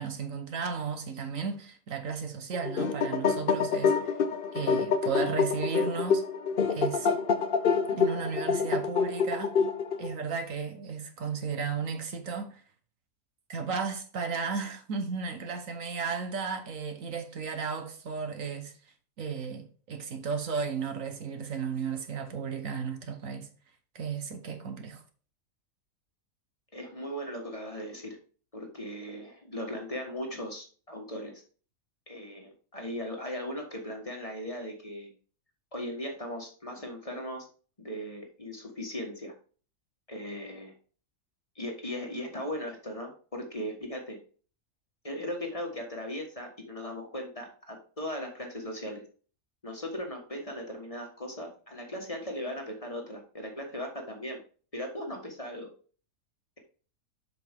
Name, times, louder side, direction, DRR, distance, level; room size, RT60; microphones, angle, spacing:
voice 1, 0.0-4.2 4.5-6.2 6.7-7.1 7.9-9.6 10.0-12.6 13.5-18.7 19.2-23.5 23.9-25.0, right 5 dB, 65° right, 1.4 m, -34 dB
sound 1, 2.5-10.1, left 5 dB, 50° left, 0.7 m, -27 dB
voice 2, 26.7-28.2 28.5-31.4 32.1-35.1 35.7-37.5 37.8-39.3 40.1-40.7 41.5-44.2 45.0-49.0 49.6-54.4 54.7-55.7, equal, 25° left, 1.5 m, -38 dB
7.6 x 5.9 x 3.5 m
omnidirectional pair, 1.5 m